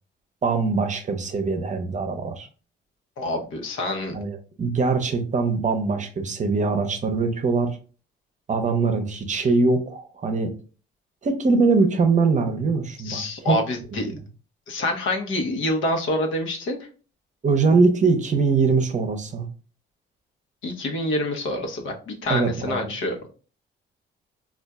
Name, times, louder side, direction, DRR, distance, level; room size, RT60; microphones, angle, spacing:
voice 1, 0.4-2.5 4.1-7.8 8.5-10.5 11.2-13.6 13.9-14.2 17.4-19.5 22.3-22.9, right 4 dB, 40° right, 7 dB, 0.7 m, -22 dB
voice 2, 3.2-4.1 13.0-14.1 14.7-16.8 20.6-23.3, left 1 dB, 80° left, 3 dB, 0.9 m, -26 dB
4.2 x 2.4 x 2.3 m, 0.37 s
cardioid pair, 90°, 20 cm